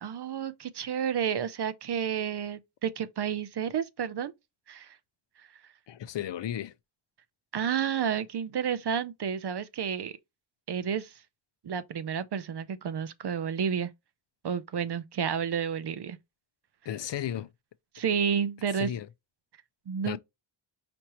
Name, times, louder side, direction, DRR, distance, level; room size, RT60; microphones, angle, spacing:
voice 1, 0.0-4.3 4.7-5.0 7.5-10.1 10.7-11.1 11.6-13.9 14.4-16.2 17.9-18.9 19.9-20.2, right 7 dB, 55° right, 0.6 m, -30 dB
voice 2, 5.9-6.7 16.9-17.5 18.7-19.1 20.0-20.2, left 10 dB, 65° left, 0.5 m, -34 dB
5.1 x 2.9 x 2.9 m
wide cardioid pair, 110°, 47 cm